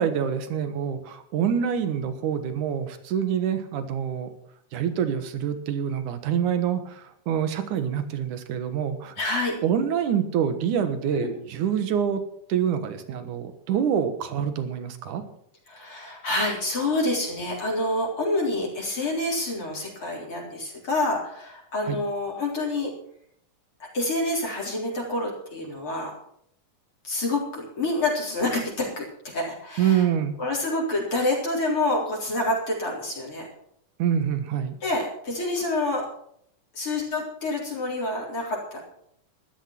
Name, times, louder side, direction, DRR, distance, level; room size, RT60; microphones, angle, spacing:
voice 1, 0.0-4.3 4.7-9.1 9.6-12.2 12.5-15.2 21.9-22.0 29.8-30.3 34.0-34.7, right 8 dB, 80° right, 9 dB, 2.9 m, -26 dB
voice 2, 9.2-9.6 11.1-11.3 15.7-22.9 23.8-26.1 27.0-30.1 30.4-33.5 34.8-36.0 36.7-38.8, left 2 dB, 45° left, -2 dB, 4.8 m, -27 dB
14.5 x 12.0 x 6.0 m, 0.68 s
omnidirectional pair, 3.5 m